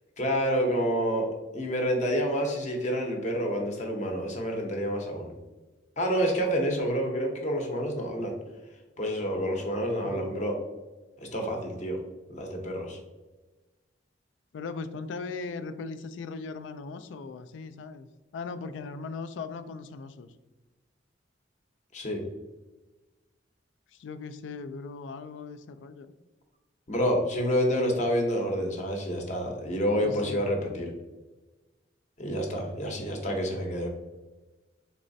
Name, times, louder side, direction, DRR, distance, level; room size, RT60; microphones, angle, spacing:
voice 1, 0.2-5.3 6.0-8.4 9.0-10.6 11.2-12.0 12.3-13.0 21.9-22.2 26.9-30.9 32.2-33.9, equal, 40° left, 2 dB, 0.7 m, -28 dB
voice 2, 14.5-18.1 18.3-20.3 23.9-26.1 30.0-30.5 32.8-33.0, left 4 dB, 80° left, 11 dB, 0.3 m, -39 dB
4.1 x 3.2 x 2.6 m, 1.2 s
head